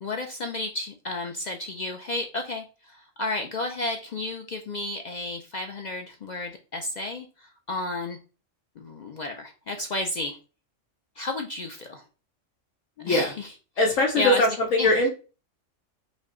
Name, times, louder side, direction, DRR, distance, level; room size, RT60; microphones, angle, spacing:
voice 1, 0.0-8.2 8.8-10.4 11.2-12.0 13.0-13.5 14.2-14.4 14.8-14.9, left 2 dB, 65° left, 4 dB, 0.4 m, -32 dB
voice 2, 13.0-13.3 13.8-15.1, left 1 dB, 85° left, 0 dB, 1.2 m, -21 dB
5.2 x 2.2 x 3.7 m, 0.34 s
omnidirectional pair, 1.3 m